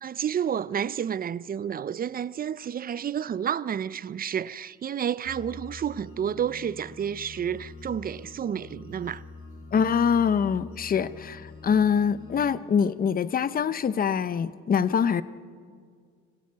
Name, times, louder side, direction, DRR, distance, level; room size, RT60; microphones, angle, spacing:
voice 1, 0.0-9.2, right 8 dB, 30° right, 0.5 m, -30 dB
sound 1, 5.2-12.5, left 3 dB, 45° left, 3.4 m, -45 dB
voice 2, 9.7-15.2, left 7 dB, 30° left, 0.6 m, -24 dB
25.0 x 15.5 x 8.5 m
cardioid pair, 120°, 31 cm